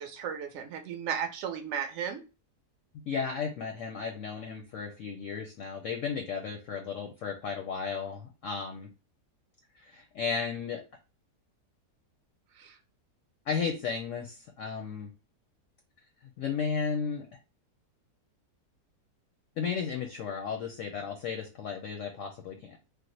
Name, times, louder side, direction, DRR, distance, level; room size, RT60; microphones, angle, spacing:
voice 1, 0.0-2.2 12.6-12.8, right 8 dB, 65° right, 5 dB, 0.7 m, -35 dB
voice 2, 3.1-8.9 9.8-10.8 13.5-15.1 16.4-17.3 19.6-22.8, left 6 dB, 70° left, 3 dB, 0.8 m, -34 dB
3.5 x 2.0 x 3.0 m, 0.30 s
omnidirectional pair, 1.8 m